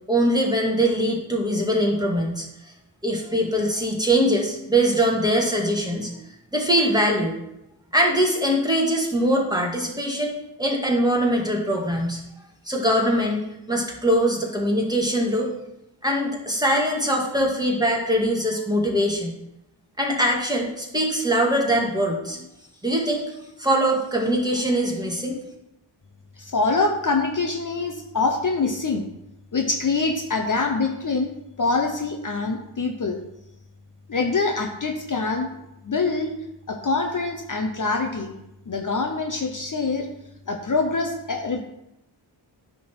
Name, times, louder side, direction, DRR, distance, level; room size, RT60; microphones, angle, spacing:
voice 1, 0.1-2.5 3.0-6.1 6.5-7.4 7.9-12.2 12.7-15.5 16.0-19.4 20.0-22.4 22.8-25.4, equal, 10° right, -1 dB, 1.9 m, -22 dB
voice 2, 26.4-29.1 29.5-31.3 31.6-33.2 34.1-35.5 35.8-36.4 36.7-38.3 38.7-40.1 40.5-41.6, left 3 dB, 40° left, 4 dB, 0.9 m, -24 dB
10.0 x 3.9 x 6.1 m, 0.86 s
wide cardioid pair, 90°, 48 cm